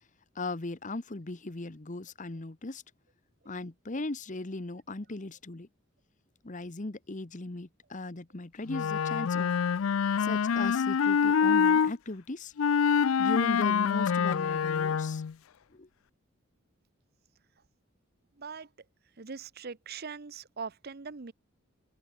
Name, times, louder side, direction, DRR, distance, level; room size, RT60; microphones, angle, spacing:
voice 1, 0.3-2.8 3.4-5.7 6.4-9.5 10.2-12.5 13.2-15.2 15.7-15.9, left 2 dB, 40° left, 1.1 m, -38 dB
Wind instrument woodwind instrument, 8.7-11.9 12.6-15.3, left 7 dB, 80° left, 0.4 m, -26 dB
voice 2, 18.4-18.7 19.2-21.3, right 5 dB, 50° right, 0.8 m, -41 dB
head